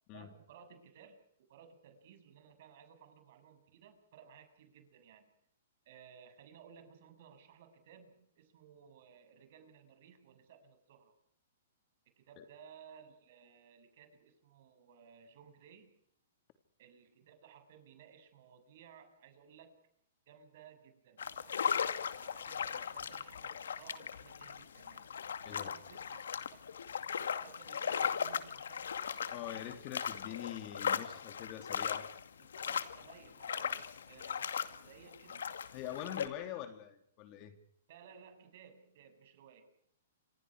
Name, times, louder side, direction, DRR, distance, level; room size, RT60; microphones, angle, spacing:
voice 1, 0.1-1.2 1.5-5.3 5.9-11.1 12.2-15.9 16.8-19.8 20.3-21.9 22.2-25.1 25.4-26.6 27.1-28.9 30.0-30.2 32.4-35.6 36.0-36.5 37.9-39.7, right 7 dB, 55° right, 7 dB, 7.4 m, -58 dB
sound 1, 21.2-36.3, left 7 dB, 85° left, 2.2 m, -38 dB
voice 2, 29.3-32.1 32.7-32.8 35.7-37.6, left 11 dB, 35° left, 8 dB, 3.3 m, -44 dB
28.5 x 26.0 x 5.0 m, 0.67 s
hypercardioid pair, 145°, 0 cm